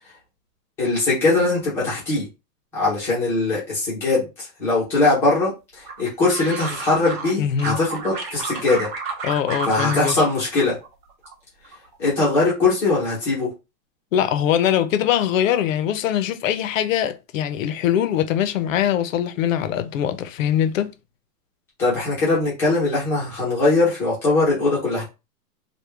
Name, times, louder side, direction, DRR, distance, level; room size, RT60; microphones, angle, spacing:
voice 1, 0.8-2.3 2.7-8.9 9.7-10.7 12.0-13.5 21.8-25.1, left 3 dB, 5° left, 0.5 m, -21 dB
sound 1, 5.8-7.3 7.6-10.3 10.6-11.3 11.6-12.1, right 4 dB, 35° right, 0.7 m, -31 dB
voice 2, 7.4-7.8 9.2-10.2 14.1-20.9, left 10 dB, 55° left, 0.6 m, -22 dB
3.3 x 2.2 x 3.2 m
supercardioid pair, 165°, 48 cm